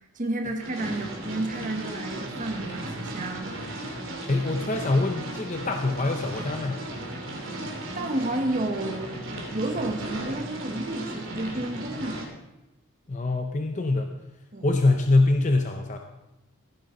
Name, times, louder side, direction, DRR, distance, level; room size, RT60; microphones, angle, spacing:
voice 1, 0.1-3.6 7.9-12.2 14.5-14.7, right 2 dB, 35° right, 3 dB, 1.3 m, -31 dB
sound 1, 0.6-12.2, right 1 dB, 60° right, 2.7 m, -36 dB
voice 2, 4.3-6.8 13.1-14.2 14.6-16.0, left 2 dB, 35° left, 4 dB, 0.6 m, -24 dB
16.0 x 10.0 x 3.9 m, 0.98 s
head